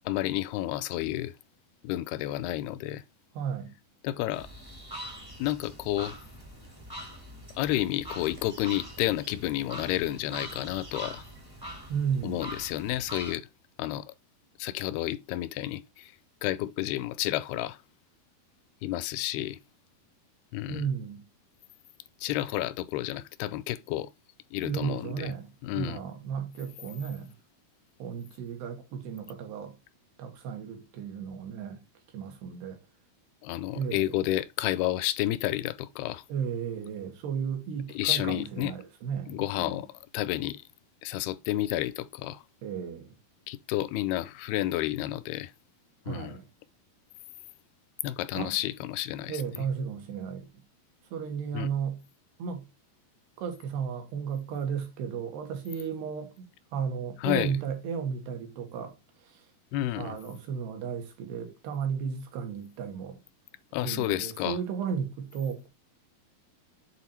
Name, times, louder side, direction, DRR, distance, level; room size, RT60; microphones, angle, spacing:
voice 1, 0.1-1.3 1.8-3.0 4.0-4.5 5.4-6.2 7.6-11.2 12.2-13.5 13.8-14.1 14.6-16.1 16.4-17.8 18.8-19.6 20.5-20.9 22.2-24.1 24.5-25.3 25.6-26.0 33.4-36.2 37.9-38.7 39.3-39.9 40.1-40.6 41.0-42.4 43.5-45.5 46.1-46.3 48.0-49.4 51.5-51.7 57.2-57.5 59.7-60.2 63.7-64.6, left 15 dB, 85° left, 2.4 m, -30 dB
voice 2, 3.4-3.7 11.9-12.4 20.7-21.2 24.6-27.3 28.0-29.7 30.2-31.8 32.1-32.8 33.7-34.2 36.3-39.8 42.6-43.2 46.1-46.5 48.4-48.6 49.3-50.5 51.1-52.0 52.4-52.6 53.4-58.9 59.3-59.4 60.0-63.2 63.8-65.7, right 7 dB, 85° right, 3.5 m, -34 dB
sound 1, 4.3-13.3, right 1 dB, 20° right, 0.5 m, -43 dB
8.3 x 3.9 x 4.2 m
omnidirectional pair, 4.5 m